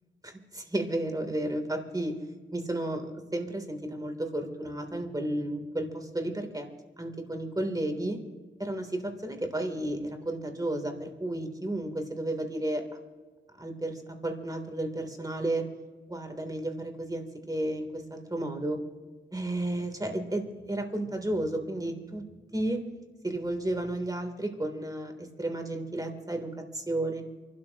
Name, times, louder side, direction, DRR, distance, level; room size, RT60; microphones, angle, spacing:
voice 1, 0.2-2.2 2.5-6.7 7.0-8.2 8.6-12.8 13.6-15.6 16.1-18.8 19.3-22.3 22.5-22.8 23.2-27.2, right 1 dB, 20° right, 4 dB, 3.1 m, -32 dB
29.0 x 12.5 x 2.9 m, 1.4 s
cardioid pair, 55°, 19 cm